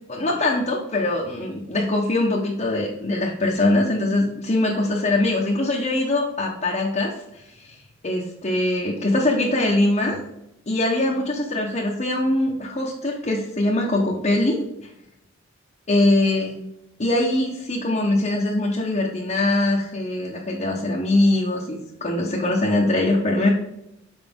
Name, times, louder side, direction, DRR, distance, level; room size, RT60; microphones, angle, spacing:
voice 1, 0.1-7.1 7.6-7.7 8.0-10.2 10.7-14.6 15.9-16.6 17.0-23.5, left 2 dB, 35° left, -3 dB, 0.9 m, -22 dB
7.1 x 4.8 x 3.6 m, 0.85 s
head